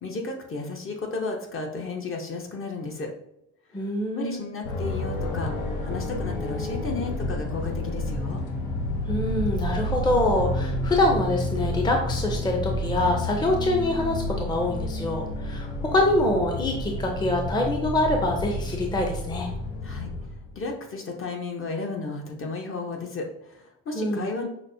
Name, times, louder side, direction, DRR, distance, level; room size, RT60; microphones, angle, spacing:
voice 1, 0.0-3.1 4.1-5.5 5.8-8.4 19.8-20.1 20.5-24.5, left 3 dB, 45° left, 2 dB, 0.9 m, -33 dB
voice 2, 3.7-4.4 9.1-19.5 23.9-24.3, left 1 dB, 15° left, 1 dB, 0.6 m, -25 dB
sound 1, 4.6-20.7, left 1 dB, 80° left, 0.8 m, -30 dB
5.9 x 2.0 x 2.7 m, 0.79 s
cardioid pair, 90°, 30 cm